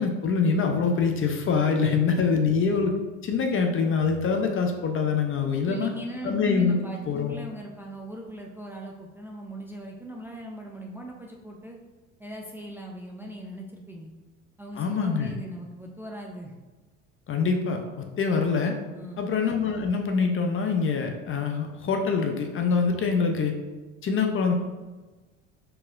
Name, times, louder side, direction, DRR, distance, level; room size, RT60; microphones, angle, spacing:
voice 1, 0.0-2.9 3.2-5.9 6.2-6.8 7.1-7.3 14.8-15.3 17.3-17.8 18.2-18.8 19.2-23.5 24.0-24.5, left 5 dB, 35° left, 4 dB, 0.7 m, -24 dB
voice 2, 5.6-11.8 12.2-14.1 14.6-16.5 18.9-19.3, right 1 dB, 5° right, 0 dB, 0.5 m, -40 dB
4.4 x 4.1 x 2.6 m, 1.2 s
hypercardioid pair, 75°, 36 cm